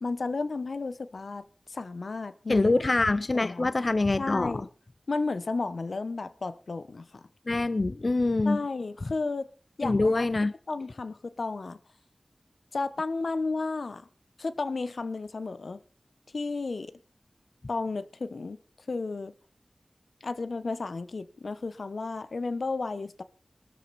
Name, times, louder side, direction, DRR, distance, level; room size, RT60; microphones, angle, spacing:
voice 1, 0.0-2.7 3.4-3.7 4.2-4.7 5.1-7.2 8.4-9.5 9.8-10.3 10.7-11.8 12.7-14.1 14.4-15.8 16.3-16.9 17.7-18.6 18.9-19.3 20.2-23.2, left 3 dB, 85° left, 1.1 m, -33 dB
voice 2, 2.5-4.7 7.5-8.6 9.8-10.5, left 2 dB, 50° left, 0.6 m, -25 dB
19.0 x 13.5 x 4.3 m
wide cardioid pair, 65°, 0 cm